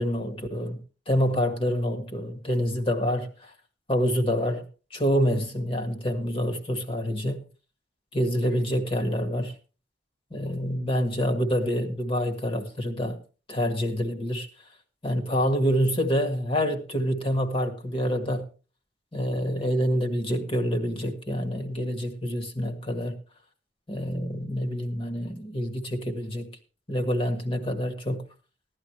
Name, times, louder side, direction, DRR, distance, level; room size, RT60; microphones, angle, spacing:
voice 1, 0.0-3.5 3.9-4.6 4.9-7.4 8.1-9.5 10.3-13.2 13.5-14.5 15.0-18.5 19.1-23.2 23.9-26.5 26.9-28.2, equal, 30° left, 1.8 m, -27 dB
16.0 x 11.5 x 3.2 m
head